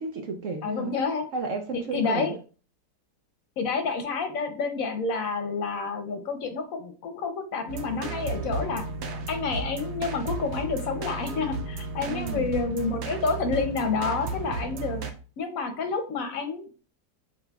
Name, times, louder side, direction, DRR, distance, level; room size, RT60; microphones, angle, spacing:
voice 1, 0.0-1.0 1.3-2.4 12.1-12.5, right 4 dB, 65° right, 4 dB, 0.8 m, -32 dB
voice 2, 0.6-1.3 1.9-2.3 3.6-8.9 9.3-15.0 15.4-16.7, left 4 dB, 65° left, 6 dB, 1.0 m, -29 dB
sound 1, 7.7-15.1, right 3 dB, 85° right, 1.2 m, -34 dB
7.5 x 2.9 x 2.3 m, 0.38 s
omnidirectional pair, 1.7 m